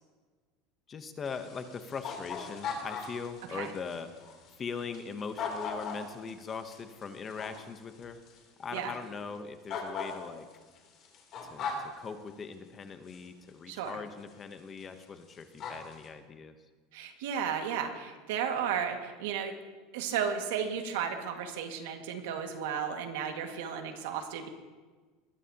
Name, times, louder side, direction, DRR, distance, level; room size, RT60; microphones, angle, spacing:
voice 1, 0.9-4.1 4.6-8.2 8.6-10.5 11.4-16.5, left 5 dB, 20° left, 9 dB, 0.8 m, -41 dB
sound 1, 1.2-8.4 8.8-8.9 9.7-11.9 13.1-13.2 13.8-13.9 14.3-14.5 14.8-15.0 15.3-16.1, left 6 dB, 35° left, 3.0 m, -39 dB
voice 2, 16.9-19.5 19.9-24.5, right 8 dB, 80° right, 4 dB, 1.8 m, -34 dB
20.0 x 14.0 x 2.8 m, 1.4 s
supercardioid pair, 160°, 0 cm